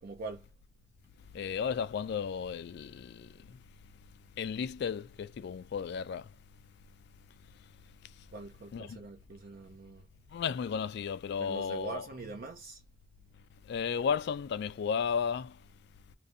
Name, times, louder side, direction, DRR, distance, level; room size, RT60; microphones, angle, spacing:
voice 1, 0.0-0.5 8.3-10.1 11.4-12.8, right 3 dB, 50° right, 0.4 m, -43 dB
voice 2, 1.3-3.6 4.4-6.3 8.0-8.3 8.7-9.0 10.3-12.1 13.6-15.7, left 6 dB, 60° left, 0.3 m, -34 dB
2.6 x 2.5 x 2.5 m
head